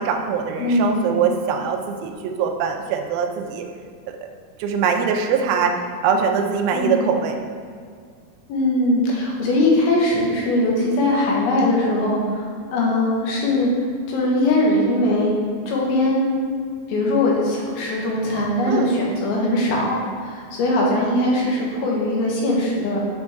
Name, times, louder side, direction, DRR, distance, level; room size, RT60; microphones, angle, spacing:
voice 1, 0.0-3.7 4.6-7.4 18.7-18.9, right 6 dB, 80° right, 3 dB, 2.4 m, -22 dB
voice 2, 0.6-1.1 6.7-7.0 8.5-12.4 12.7-13.7 14.1-15.3 15.7-16.3 16.9-23.1, left 1 dB, 85° left, -2 dB, 3.1 m, -20 dB
8.0 x 5.3 x 3.5 m, 2.1 s
omnidirectional pair, 4.3 m